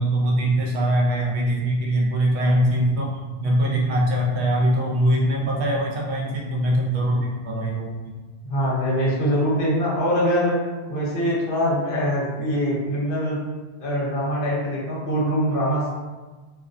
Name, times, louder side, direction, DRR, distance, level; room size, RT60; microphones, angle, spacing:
voice 1, 0.0-8.0, right 1 dB, 70° right, -2 dB, 0.8 m, -22 dB
voice 2, 8.4-10.6 10.9-13.4 13.8-15.9, equal, 55° left, -6 dB, 0.9 m, -23 dB
2.3 x 2.1 x 2.5 m, 1.3 s
omnidirectional pair, 1.2 m